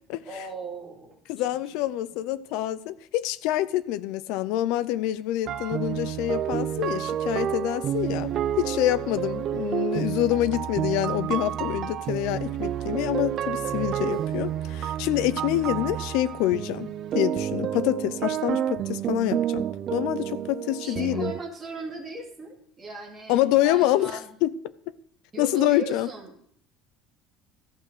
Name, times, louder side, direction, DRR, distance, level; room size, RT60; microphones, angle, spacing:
voice 1, 0.2-1.4 1.7-1.9 20.8-24.3 25.3-26.4, right 3 dB, 15° right, 2.3 m, -38 dB
voice 2, 1.3-8.3 8.6-21.3 23.3-24.6 25.4-26.1, left 14 dB, 65° left, 0.5 m, -26 dB
sound 1, 5.5-21.4, right 10 dB, 35° right, 0.4 m, -29 dB
14.5 x 6.1 x 6.6 m
cardioid pair, 180°, 0 cm